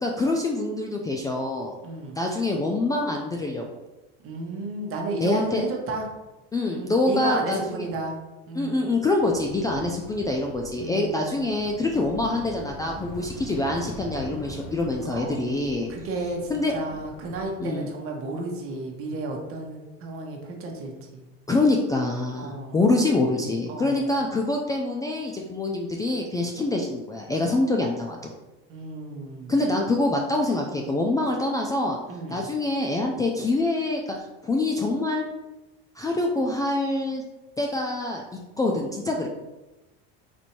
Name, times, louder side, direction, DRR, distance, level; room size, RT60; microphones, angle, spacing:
voice 1, 0.0-1.8 2.2-3.6 5.2-5.6 6.5-7.8 8.6-15.9 16.5-16.7 17.6-17.9 21.5-28.2 29.5-32.0 32.3-35.2 36.0-37.2 37.6-38.2 38.6-39.3, left 2 dB, 10° left, 0 dB, 0.3 m, -25 dB
voice 2, 1.8-2.2 4.2-6.1 6.7-8.2 8.5-8.8 10.8-11.4 15.1-15.4 15.9-21.2 22.3-22.8 23.7-24.1 28.7-29.6 32.1-32.5, right 2 dB, 45° right, 1 dB, 1.1 m, -33 dB
sound 1, 9.1-17.5, equal, 45° left, 1.1 m, -42 dB
4.3 x 2.6 x 4.4 m, 1.1 s
supercardioid pair, 125°, 30 cm